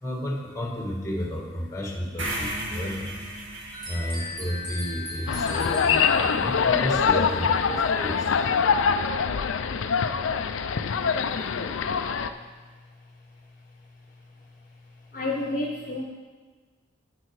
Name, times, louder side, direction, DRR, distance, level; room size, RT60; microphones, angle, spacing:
voice 1, 0.0-3.1 3.9-8.3, equal, 15° left, 0 dB, 1.3 m, -32 dB
sound 1, 2.2-6.3, right 1 dB, 70° right, 2.0 m, -36 dB
sound 2, 3.7-6.6, left 2 dB, 20° right, 1.4 m, -37 dB
sound 3, 5.3-12.3, left 6 dB, 80° left, 0.5 m, -24 dB
voice 2, 10.9-11.5 15.1-16.0, left 2 dB, 40° left, 0 dB, 0.9 m, -31 dB
9.8 x 7.7 x 4.7 m, 1.4 s
head